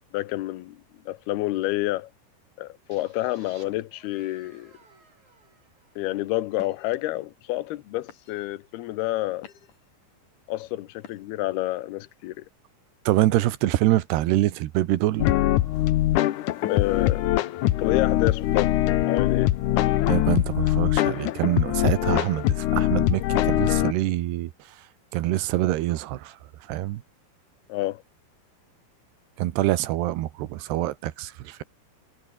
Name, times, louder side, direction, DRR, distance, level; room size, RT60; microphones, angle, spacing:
voice 1, 0.1-2.1 2.6-4.7 6.0-9.5 10.5-12.5 16.6-17.3 17.8-19.5 27.7-28.0, left 17 dB, 70° left, 2.9 m, -29 dB
sound 1, 2.9-6.6, right 4 dB, 40° right, 7.8 m, -57 dB
sound 2, 5.7-6.0 6.5-7.0 7.6-7.8 8.1-8.6 9.1-9.9 11.0-11.5, left 8 dB, 50° left, 3.6 m, -48 dB
voice 2, 13.1-15.3 20.1-24.8 25.1-26.4 26.7-27.0 29.4-31.6, right 15 dB, 75° right, 3.2 m, -25 dB
sound 3, 15.2-23.9, left 14 dB, 90° left, 1.7 m, -22 dB
omnidirectional pair, 5.0 m